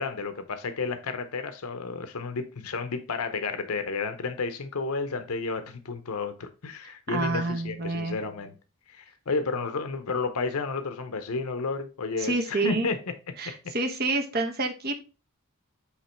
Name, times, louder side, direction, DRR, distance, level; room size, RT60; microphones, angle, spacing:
voice 1, 0.0-8.5 8.9-13.0 13.4-13.7, left 4 dB, 85° left, 0.7 m, -32 dB
voice 2, 7.1-8.2 12.2-12.9 13.4-15.0, right 2 dB, 45° right, 1.0 m, -28 dB
8.2 x 3.0 x 4.4 m
head